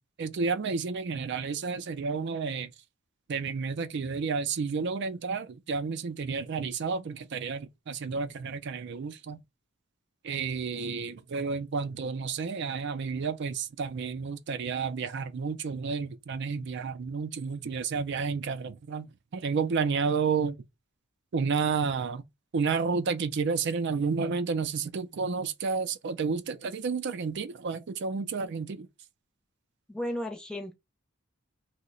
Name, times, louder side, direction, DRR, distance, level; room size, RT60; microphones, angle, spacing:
voice 1, 0.2-2.7 3.3-9.4 10.2-20.6 21.3-22.2 22.5-28.9, right 5 dB, 60° right, 0.4 m, -31 dB
voice 2, 29.9-30.7, left 1 dB, 5° left, 0.6 m, -34 dB
2.8 x 2.1 x 3.7 m
head